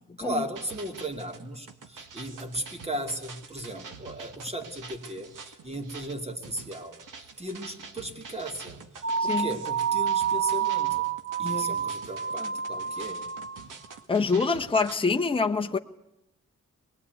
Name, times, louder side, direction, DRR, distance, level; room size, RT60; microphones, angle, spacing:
voice 1, 0.2-8.8 9.2-11.1 11.4-13.2, right 1 dB, 20° right, 2.6 m, -36 dB
sound 1, 0.5-15.0, right 5 dB, 85° right, 1.9 m, -46 dB
sound 2, 9.0-13.7, right 8 dB, 40° right, 0.9 m, -28 dB
voice 2, 11.4-11.8 14.1-15.8, left 4 dB, 15° left, 0.9 m, -26 dB
24.0 x 20.0 x 9.4 m
wide cardioid pair, 115°, 31 cm